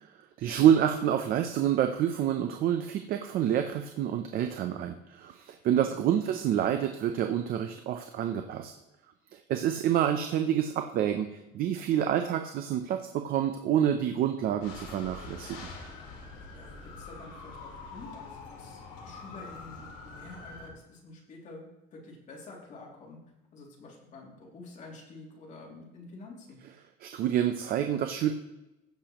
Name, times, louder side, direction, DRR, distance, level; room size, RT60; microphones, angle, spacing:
voice 1, 0.4-8.7 9.3-11.3 11.5-15.6 27.0-28.3, right 10 dB, 50° right, 6 dB, 0.6 m, -27 dB
voice 2, 5.8-6.3 16.5-23.2 23.5-26.6, left 3 dB, 40° left, -2 dB, 2.6 m, -48 dB
sound 1, 14.6-20.7, left 3 dB, 85° left, 2.2 m, -45 dB
16.0 x 6.9 x 3.0 m, 0.96 s
cardioid pair, 165°, 19 cm